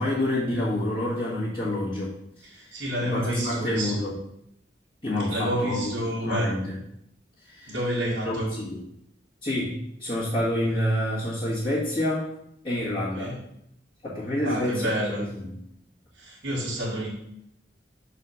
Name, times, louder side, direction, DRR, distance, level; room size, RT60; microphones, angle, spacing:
voice 1, 0.0-4.1 5.0-6.8 7.4-7.8 8.2-8.8 9.4-12.3 12.6-13.4 14.0-15.6, left 1 dB, 30° left, -10 dB, 1.6 m, -28 dB
voice 2, 2.5-4.0 5.3-6.5 7.7-8.5 13.1-13.4 14.4-15.2 16.2-17.1, equal, 85° right, -7 dB, 1.8 m, -29 dB
6.4 x 4.2 x 5.5 m, 0.76 s
head